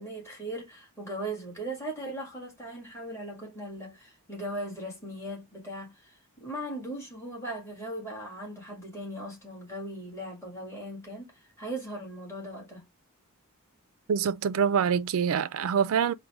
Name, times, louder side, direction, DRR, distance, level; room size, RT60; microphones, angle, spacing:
voice 1, 0.0-12.9, right 1 dB, 10° left, 1.8 m, -38 dB
voice 2, 14.1-16.1, right 7 dB, 65° right, 0.4 m, -25 dB
3.9 x 2.2 x 4.4 m
head